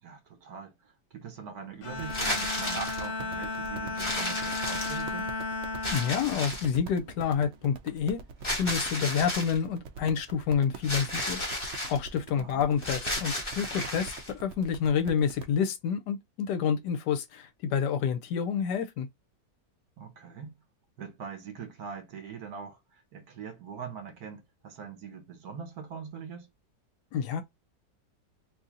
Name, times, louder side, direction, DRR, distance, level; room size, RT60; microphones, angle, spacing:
voice 1, 0.0-5.3 12.3-12.7 20.0-20.5 21.0-26.5, right 6 dB, 60° right, 1.4 m, -42 dB
Bowed string instrument, 1.8-7.3, left 3 dB, 55° left, 1.1 m, -35 dB
sound 1, 1.9-15.5, right 5 dB, 85° right, 0.6 m, -45 dB
sound 2, 2.0-3.1 4.0-5.2 5.8-6.8 8.4-9.6 10.8-12.0 12.8-14.3, left 1 dB, 20° left, 0.9 m, -33 dB
voice 2, 5.9-8.2 8.6-11.4 11.9-19.1 27.1-27.4, left 7 dB, 75° left, 1.2 m, -28 dB
2.9 x 2.7 x 3.6 m
omnidirectional pair, 1.9 m